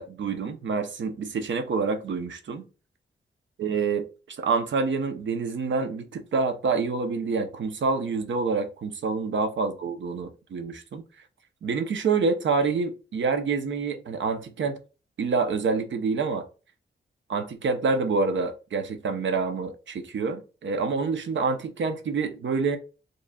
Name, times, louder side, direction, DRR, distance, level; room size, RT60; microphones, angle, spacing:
voice 1, 0.0-2.7 3.6-11.0 11.6-14.8 15.2-16.5 17.3-22.8, right 4 dB, 90° right, 0.7 m, -27 dB
5.0 x 3.1 x 2.3 m
wide cardioid pair, 170°, 19 cm